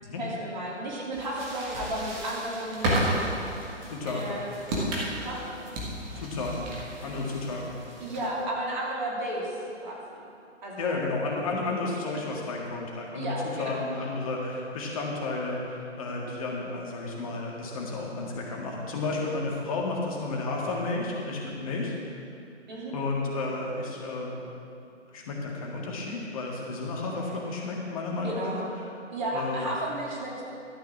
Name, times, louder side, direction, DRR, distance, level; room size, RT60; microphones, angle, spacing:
voice 1, 0.2-2.9 4.1-4.5 5.2-5.4 8.0-10.3 10.6-11.0 13.1-13.8 22.7-23.0 28.2-28.7 29.1-30.4, right 1 dB, 40° right, -4 dB, 3.0 m, -33 dB
sound 1, 1.1-8.4, right 1 dB, 15° right, 1.4 m, -33 dB
voice 2, 3.9-4.4 6.1-6.7 7.0-7.8 10.8-13.3 13.6-21.9 22.9-24.3 25.1-28.9 29.3-29.6, left 3 dB, 30° left, -2 dB, 1.9 m, -32 dB
13.0 x 5.8 x 7.2 m, 2.7 s
figure-of-eight pair, 145°, 36 cm